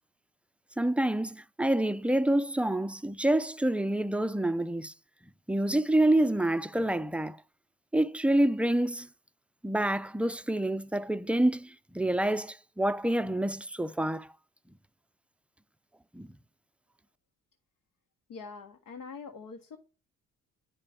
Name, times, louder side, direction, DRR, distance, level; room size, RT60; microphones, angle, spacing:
voice 1, 0.8-4.9 5.5-7.4 7.9-9.1 9.6-14.3 16.1-16.3, right 1 dB, 5° right, 0.3 m, -27 dB
voice 2, 18.3-19.8, left 5 dB, 85° left, 1.3 m, -44 dB
9.8 x 4.8 x 5.2 m
cardioid pair, 90°, 30 cm